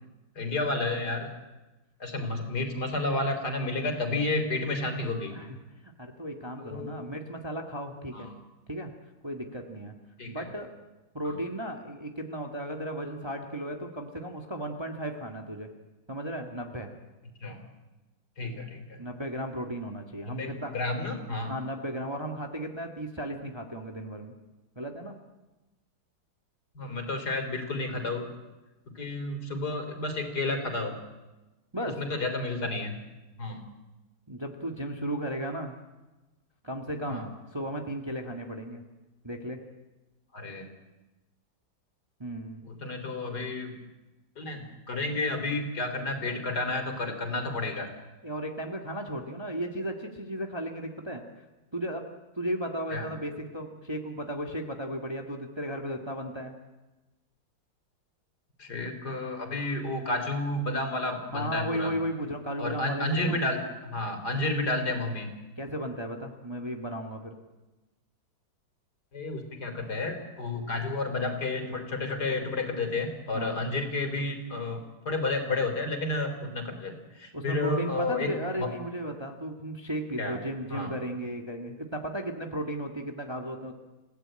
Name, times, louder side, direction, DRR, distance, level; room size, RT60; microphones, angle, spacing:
voice 1, 0.4-1.3 2.0-5.4 6.6-7.1 8.1-8.3 10.2-10.5 11.2-11.4 17.4-17.6 18.4-19.0 20.3-21.5 26.7-28.3 28.9-31.0 32.0-33.0 33.4-33.6 37.1-37.3 40.3-40.7 42.6-43.7 44.4-47.9 52.9-53.1 58.6-61.9 62.6-65.3 69.1-78.3 78.6-78.7 80.2-80.4 80.7-80.9, left 2 dB, 55° left, 6 dB, 4.0 m, -31 dB
voice 2, 5.8-8.3 8.7-8.9 9.2-9.9 10.3-10.7 11.1-15.7 16.1-16.9 19.0-20.7 21.5-24.3 24.8-25.2 31.7-32.0 34.3-35.8 36.6-38.8 39.2-39.6 42.2-42.6 48.2-51.2 51.7-52.0 52.3-56.5 61.3-63.4 65.6-67.4 73.3-73.6 77.3-83.7, right 1 dB, 15° right, 3 dB, 1.8 m, -35 dB
29.0 x 16.5 x 8.9 m, 1.1 s
omnidirectional pair, 2.1 m